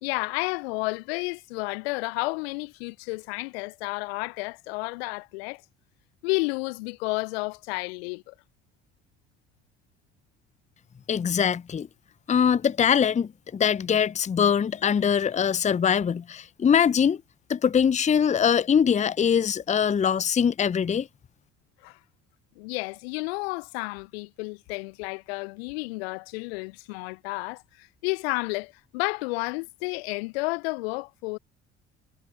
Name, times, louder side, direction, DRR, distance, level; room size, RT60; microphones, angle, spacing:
voice 1, 0.0-5.6 6.2-8.3 21.8-22.0 22.6-31.4, left 26 dB, 65° left, 1.0 m, -31 dB
voice 2, 11.1-11.9 12.3-17.2 17.5-21.1, left 7 dB, 20° left, 0.7 m, -22 dB
figure-of-eight pair, 55°, 33 cm